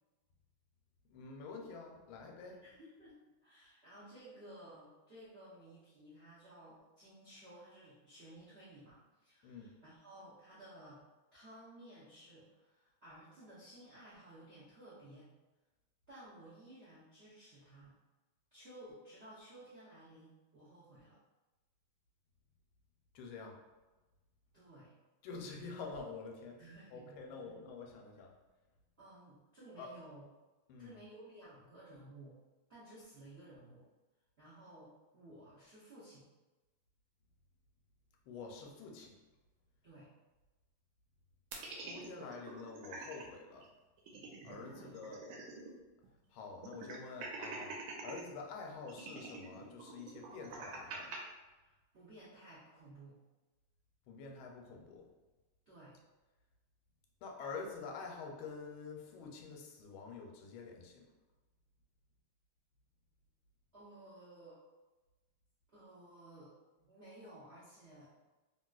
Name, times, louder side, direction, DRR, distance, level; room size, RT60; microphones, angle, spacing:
voice 1, 1.1-2.6 9.4-9.7 23.1-23.6 25.2-26.6 26.9-28.3 29.8-29.9 30.7-31.0 38.3-39.2 41.7-43.7 44.4-45.2 46.3-47.8 48.0-51.2 54.1-55.1 57.2-61.0, left 4 dB, 85° left, 1 dB, 1.4 m, -47 dB
voice 2, 2.6-11.0 11.3-15.3 16.1-18.0 18.5-21.2 24.5-24.9 26.6-27.6 29.0-30.2 30.8-32.4 32.7-33.8 34.4-36.3 39.8-40.1 44.6-44.9 51.6-53.2 55.7-56.0 63.7-64.6 65.7-66.5 66.8-68.1, right 1 dB, 70° right, -10 dB, 0.6 m, -56 dB
sound 1, 41.5-43.2 43.6-43.7 44.0-45.8 46.0-46.1 46.6-48.2 48.9-51.2, right 4 dB, 85° right, 1.4 m, -46 dB
3.1 x 2.7 x 2.3 m, 1.1 s
omnidirectional pair, 2.2 m